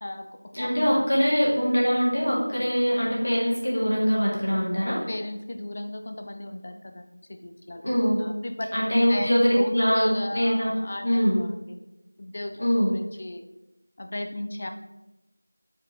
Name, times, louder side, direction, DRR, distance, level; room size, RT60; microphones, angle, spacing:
voice 1, 0.0-1.0 4.7-7.9 8.2-11.6 12.2-13.4 14.0-14.7, left 1 dB, 20° left, 5 dB, 0.4 m, -35 dB
voice 2, 0.5-5.0 7.8-8.2 8.7-10.7 11.0-11.4 12.6-12.9, equal, 40° left, -5 dB, 2.1 m, -23 dB
5.3 x 4.8 x 4.4 m, 0.99 s
figure-of-eight pair, 180°, 0 cm